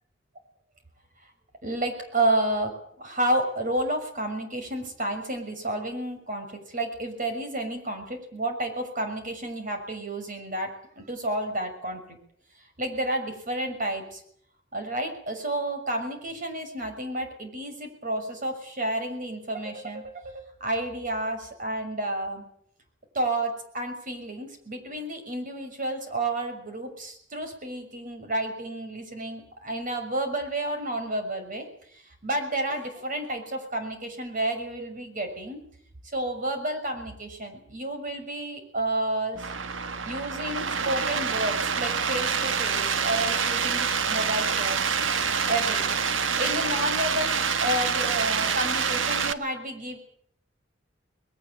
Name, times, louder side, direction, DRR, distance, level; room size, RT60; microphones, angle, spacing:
voice 1, 1.6-2.7 3.0-12.2 12.8-14.2 14.7-22.4 23.1-31.6 31.9-35.6 36.1-39.5 40.0-45.0 45.5-46.0 46.4-50.0, right 1 dB, 45° right, 6 dB, 6.3 m, -31 dB
sound 1, 39.4-49.3, right 6 dB, 85° right, 1.5 m, -26 dB
21.5 x 19.0 x 7.9 m, 0.64 s
head